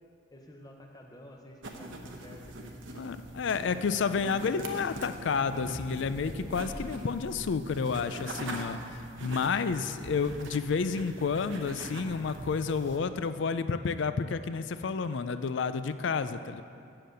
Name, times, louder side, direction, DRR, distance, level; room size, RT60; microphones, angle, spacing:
voice 1, 0.3-2.8 4.1-4.9, left 1 dB, 20° left, 2 dB, 0.8 m, -51 dB
sound 1, 1.6-13.0, right 2 dB, 70° right, 0.9 m, -43 dB
voice 2, 2.9-16.6, left 5 dB, 65° left, 12 dB, 0.4 m, -30 dB
sound 2, 5.4-9.7 10.2-10.3, right 1 dB, 20° right, 0.6 m, -46 dB
7.7 x 6.7 x 7.7 m, 2.5 s
head